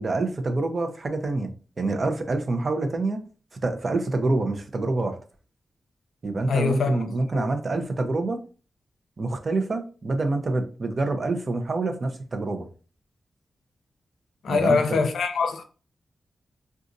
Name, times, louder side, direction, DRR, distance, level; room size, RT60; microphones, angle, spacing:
voice 1, 0.0-1.5 1.8-3.2 3.6-5.2 6.2-8.4 9.2-12.7 14.5-15.0, right 2 dB, 55° right, 0.6 m, -26 dB
voice 2, 6.5-7.0 7.3-7.5 14.4-15.6, left 5 dB, 90° left, 0.5 m, -23 dB
3.9 x 2.4 x 2.5 m
cardioid pair, 65°, 0 cm